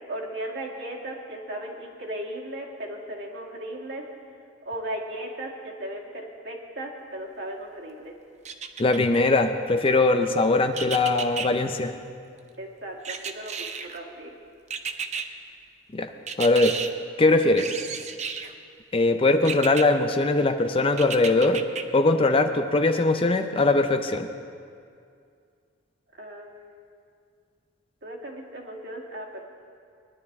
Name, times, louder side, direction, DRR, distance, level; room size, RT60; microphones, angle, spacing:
voice 1, 0.1-4.0 4.7-8.1 12.6-14.4 26.2-26.8 28.0-29.4, right 1 dB, 60° right, -1 dB, 1.9 m, -36 dB
sound 1, 8.4-9.2 10.7-11.5 13.0-14.0 14.7-15.3 16.3-16.9 17.6-18.5 19.4-19.8 21.0-21.8 22.3-22.4, right 6 dB, 35° right, 0.6 m, -32 dB
voice 2, 8.8-11.9 15.9-16.1 16.4-16.8 17.2-17.7 18.9-21.6 21.9-24.3, left 2 dB, 30° left, 7 dB, 0.5 m, -21 dB
20.5 x 11.5 x 3.6 m, 2.3 s
head